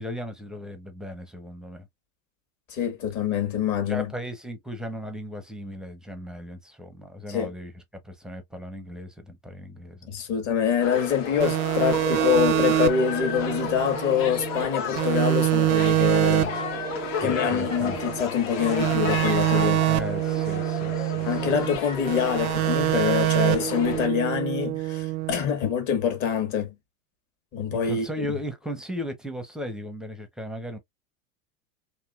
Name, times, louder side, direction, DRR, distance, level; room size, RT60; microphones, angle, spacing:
voice 1, 0.0-1.9 3.9-7.7 8.0-10.3 17.2-18.0 19.8-21.6 27.7-30.8, equal, ahead, 0.5 m, -36 dB
voice 2, 2.7-4.1 7.3-7.5 10.1-16.6 17.2-19.9 21.2-26.7 27.5-28.0, left 8 dB, 45° left, 1.5 m, -25 dB
sound 1, 10.8-24.1, left 5 dB, 65° left, 1.3 m, -33 dB
sound 2, 11.4-14.7 15.0-18.2 18.6-21.8 22.1-25.3, right 16 dB, 90° right, 0.5 m, -25 dB
3.0 x 2.7 x 2.3 m
hypercardioid pair, 105°, 41 cm